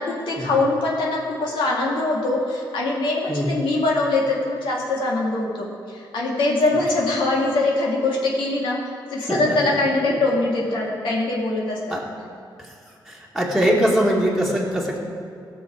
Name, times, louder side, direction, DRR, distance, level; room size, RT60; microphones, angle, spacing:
voice 1, 0.0-11.8, left 2 dB, 85° left, -3 dB, 2.0 m, -23 dB
voice 2, 3.3-3.6 9.3-9.6 11.9-12.1 12.6-12.7 13.1-15.0, equal, ahead, -4 dB, 1.9 m, -22 dB
15.5 x 6.3 x 4.9 m, 2.5 s
cardioid pair, 105°, 8 cm